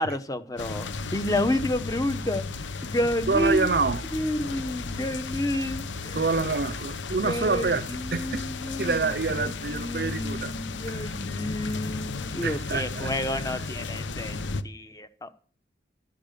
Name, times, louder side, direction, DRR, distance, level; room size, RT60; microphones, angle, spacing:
voice 1, 0.0-3.7 4.1-6.3 7.2-15.3, left 1 dB, 20° left, 1.0 m, -30 dB
sound 1, 0.6-14.6, left 3 dB, 90° left, 0.9 m, -34 dB
voice 2, 3.3-4.0 6.1-8.5 8.8-10.5 10.9-11.0 12.4-13.4, right 4 dB, 55° right, 0.6 m, -27 dB
12.5 x 10.5 x 6.7 m
head